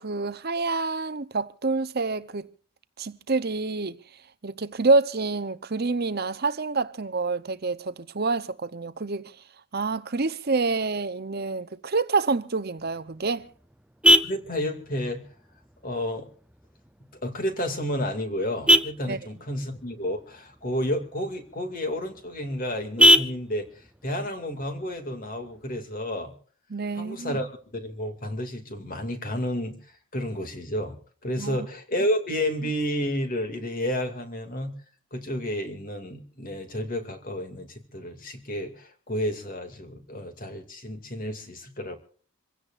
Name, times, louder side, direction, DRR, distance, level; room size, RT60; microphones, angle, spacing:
voice 1, 0.0-2.5 3.0-4.0 4.4-9.2 9.7-13.5 19.1-19.2 26.7-27.4 31.4-31.7, right 3 dB, 45° right, 0.7 m, -27 dB
Vehicle horn car horn honking, 12.8-25.8, equal, 5° right, 0.6 m, -27 dB
voice 2, 14.2-15.3 15.8-16.3 17.2-23.7 24.0-26.3 26.9-31.0 31.2-34.8 35.1-42.0, equal, 40° left, 2.4 m, -31 dB
27.0 x 16.0 x 2.5 m
head